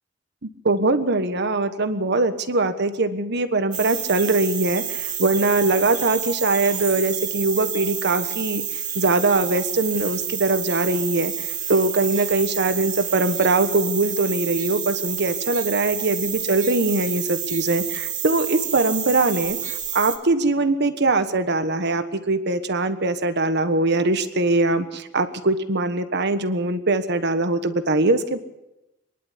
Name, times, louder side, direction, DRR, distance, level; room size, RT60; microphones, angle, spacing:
voice 1, 0.6-19.6 19.9-28.4, right 2 dB, 60° right, 10 dB, 1.4 m, -22 dB
sound 1, 3.7-20.2, right 8 dB, 40° right, 2.5 m, -29 dB
24.0 x 11.0 x 9.9 m, 0.96 s
head